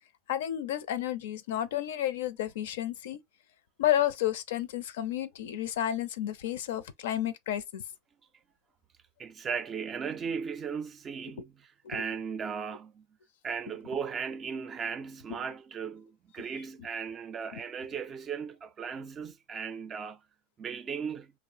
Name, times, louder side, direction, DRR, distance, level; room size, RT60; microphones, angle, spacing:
voice 1, 0.3-3.2 3.8-7.8 11.4-11.5 11.8-12.0 15.3-15.4 17.5-17.6, left 11 dB, 80° left, 0.5 m, -31 dB
voice 2, 9.2-13.1 13.4-20.2 20.6-21.3, right 6 dB, 25° right, 0.4 m, -37 dB
3.1 x 2.0 x 2.6 m
supercardioid pair, 130°, 0 cm